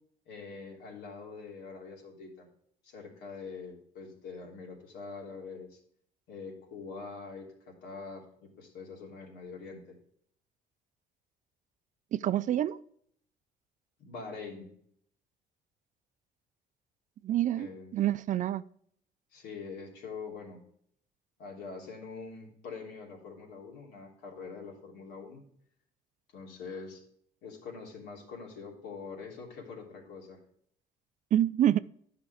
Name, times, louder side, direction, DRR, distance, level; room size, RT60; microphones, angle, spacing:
voice 1, 0.3-2.5 2.8-5.8 6.3-10.0 14.0-14.7 17.5-17.9 19.3-20.6 21.4-25.4 26.3-27.0 27.4-30.4, left 4 dB, 85° left, -1 dB, 3.1 m, -44 dB
voice 2, 12.1-12.8 17.2-17.7 17.9-18.6 31.3-31.8, right 11 dB, 50° right, 16 dB, 0.4 m, -26 dB
11.0 x 6.0 x 4.9 m, 0.63 s
cardioid pair, 110°, 17 cm